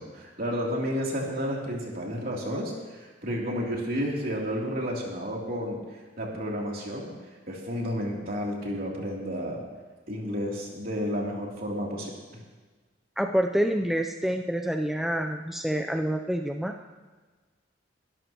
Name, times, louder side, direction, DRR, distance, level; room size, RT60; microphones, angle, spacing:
voice 1, 0.0-5.8 6.2-7.1 7.5-9.6 10.1-12.1, equal, 50° right, -2 dB, 3.0 m, -31 dB
voice 2, 13.2-16.7, equal, ahead, 4 dB, 0.5 m, -27 dB
22.5 x 12.0 x 3.0 m, 1.3 s
head